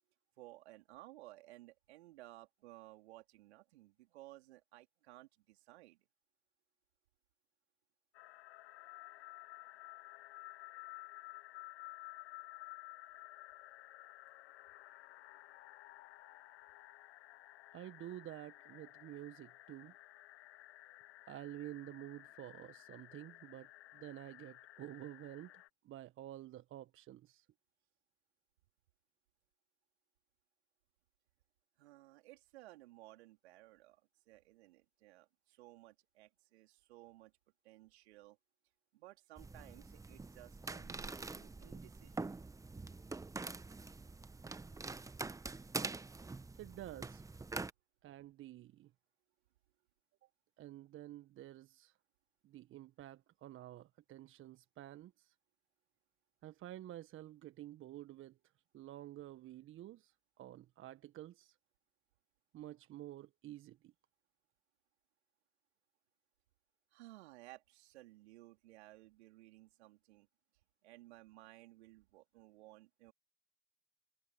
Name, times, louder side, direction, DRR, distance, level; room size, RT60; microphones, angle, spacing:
voice 1, 0.4-6.1 31.8-37.3 37.6-38.4 38.9-42.3 66.9-70.3 70.8-73.1, right 18 dB, 65° right, 4.0 m, -58 dB
sound 1, 8.1-25.7, left 17 dB, 60° left, 1.3 m, -54 dB
voice 2, 17.7-19.9 21.3-25.5 25.8-27.5 46.6-47.2 48.0-48.9 50.6-52.0 52.4-55.3 56.4-58.4 58.7-61.6 62.5-63.9, right 14 dB, 35° right, 1.6 m, -50 dB
sound 2, 39.4-47.7, right 3 dB, 10° right, 1.3 m, -45 dB
figure-of-eight pair, 90°, 36 cm